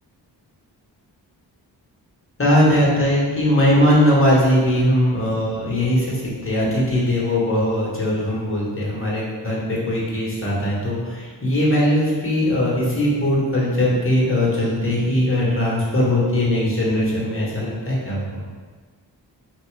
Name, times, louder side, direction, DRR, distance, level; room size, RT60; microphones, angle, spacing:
voice 1, 2.4-18.4, left 1 dB, 30° left, -5 dB, 1.4 m, -20 dB
3.4 x 2.9 x 3.2 m, 1.5 s
cardioid pair, 45°, 45 cm